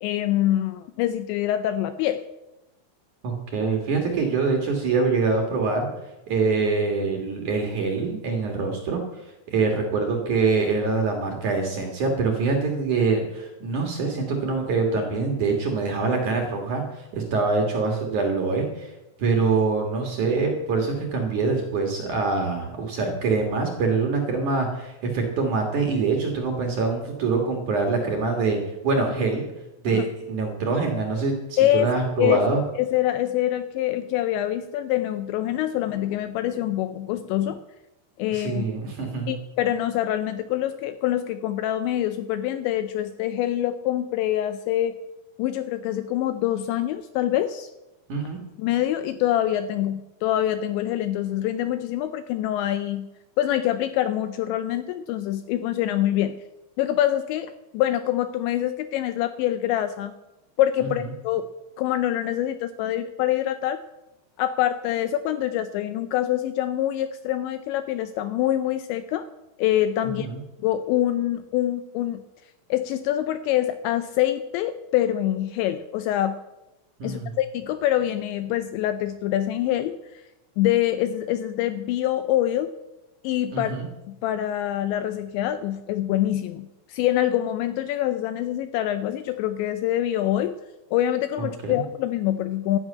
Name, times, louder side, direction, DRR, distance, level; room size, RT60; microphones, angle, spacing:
voice 1, 0.0-2.2 29.9-30.0 31.6-31.9 32.2-32.4 32.8-37.6 38.2-38.7 39.3-45.0 45.4-47.7 48.6-53.1 53.4-56.3 56.8-60.1 60.6-61.4 61.8-63.8 64.4-69.3 69.6-70.3 70.6-72.2 72.7-76.4 77.0-80.2 80.6-82.7 83.2-83.7 84.1-90.6 90.9-92.8, left 12 dB, 80° left, 11 dB, 2.7 m, -25 dB
voice 2, 3.2-5.9 6.3-9.0 9.5-18.9 19.2-29.4 29.8-32.6 38.3-39.4 48.1-48.4 60.8-60.9 70.0-70.4 77.0-77.3 83.5-83.9 91.4-91.8, right 4 dB, 55° right, 2 dB, 2.4 m, -24 dB
12.5 x 10.5 x 8.6 m, 0.99 s
omnidirectional pair, 5.6 m